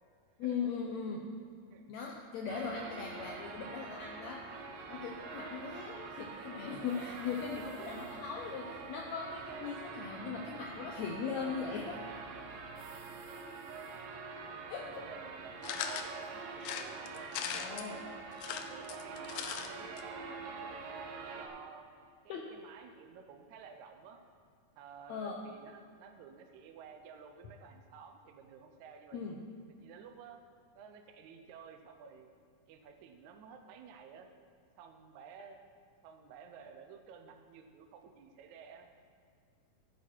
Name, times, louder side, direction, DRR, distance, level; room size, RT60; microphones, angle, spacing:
voice 1, 0.4-1.2 1.9-4.4 4.9-12.0 14.7-15.0 17.5-18.0 22.3-22.5 25.1-25.4 29.1-29.4, left 6 dB, 70° left, 0 dB, 1.8 m, -39 dB
sound 1, 2.5-21.5, right 4 dB, 85° right, 2.7 m, -45 dB
voice 2, 14.6-18.2 18.7-20.9 21.3-21.9 22.2-24.2 24.8-29.2 29.8-30.4 30.7-32.3 32.7-34.3 34.8-35.6 36.0-38.9, right 6 dB, 70° right, 5 dB, 2.0 m, -53 dB
sound 2, 15.6-16.1 16.6-17.9 18.3-19.7 20.0-20.1 20.3-20.4, left 8 dB, 90° left, 2.4 m, -39 dB
15.0 x 8.4 x 4.5 m, 2.3 s
omnidirectional pair, 3.8 m